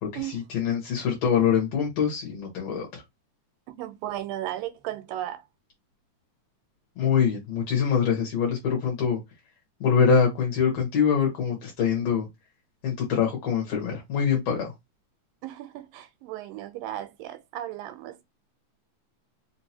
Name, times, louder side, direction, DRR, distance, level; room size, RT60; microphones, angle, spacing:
voice 1, 0.0-3.0 7.0-9.2 9.8-12.3 12.8-14.7, left 7 dB, 60° left, 1.9 m, -24 dB
voice 2, 3.8-5.4 15.4-18.2, right 13 dB, 85° right, 2.4 m, -35 dB
5.1 x 2.7 x 2.8 m
omnidirectional pair, 3.9 m